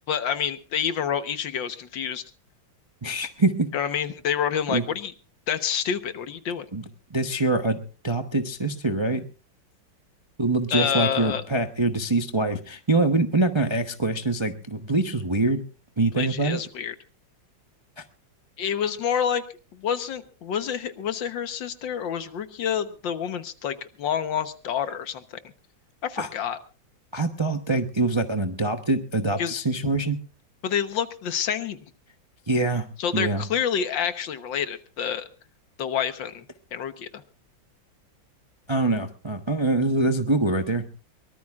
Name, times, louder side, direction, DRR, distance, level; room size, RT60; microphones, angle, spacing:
voice 1, 0.1-2.2 3.7-5.1 5.5-6.7 10.7-11.4 16.1-17.0 18.6-19.5 19.7-25.4 26.0-26.6 29.4-29.6 30.6-31.8 33.0-35.3 35.8-36.5 36.7-37.2, left 8 dB, 75° left, 10 dB, 1.8 m, -28 dB
voice 2, 3.0-3.7 4.7-4.8 6.7-6.8 7.1-9.2 10.4-15.7 16.0-16.6 26.2-26.3 27.1-30.2 32.5-32.9 33.1-33.4 38.7-40.8, right 2 dB, 25° right, 6 dB, 0.6 m, -24 dB
23.0 x 18.5 x 2.4 m, 0.36 s
omnidirectional pair, 2.1 m